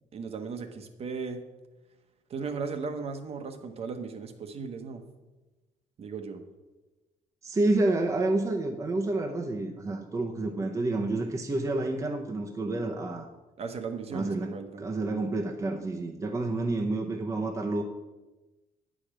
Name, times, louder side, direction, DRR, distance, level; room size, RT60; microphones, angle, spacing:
voice 1, 0.1-1.4 2.3-5.0 6.0-6.4 13.6-14.8, right 5 dB, 45° right, 7 dB, 1.0 m, -36 dB
voice 2, 7.4-13.3 14.1-17.8, right 2 dB, 20° right, 1 dB, 0.7 m, -29 dB
9.3 x 5.0 x 7.4 m, 1.1 s
cardioid pair, 145°, 15 cm